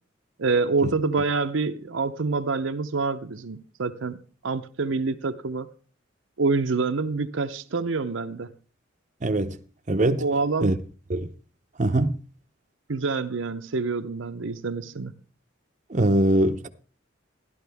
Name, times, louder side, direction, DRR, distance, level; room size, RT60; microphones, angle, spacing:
voice 1, 0.4-4.2 4.4-5.7 6.4-8.5 10.2-10.8 12.9-15.1, right 4 dB, 70° right, 0.7 m, -26 dB
voice 2, 9.2-9.6 9.9-10.2 10.6-10.7 11.1-11.3 11.8-12.2 15.9-16.7, right 1 dB, 35° right, 0.7 m, -22 dB
13.5 x 11.5 x 3.5 m
head